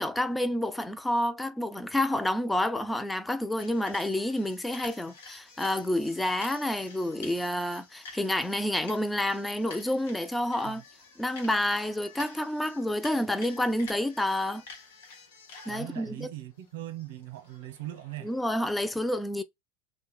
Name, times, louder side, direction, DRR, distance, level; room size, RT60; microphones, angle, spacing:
voice 1, 0.0-10.8 11.2-14.6 15.7-16.3 18.2-19.4, left 1 dB, 5° left, 0.4 m, -29 dB
sound 1, 3.6-18.5, left 4 dB, 85° left, 1.1 m, -50 dB
voice 2, 15.7-18.3, right 14 dB, 75° right, 0.7 m, -40 dB
2.8 x 2.2 x 3.0 m
supercardioid pair, 115°, 0 cm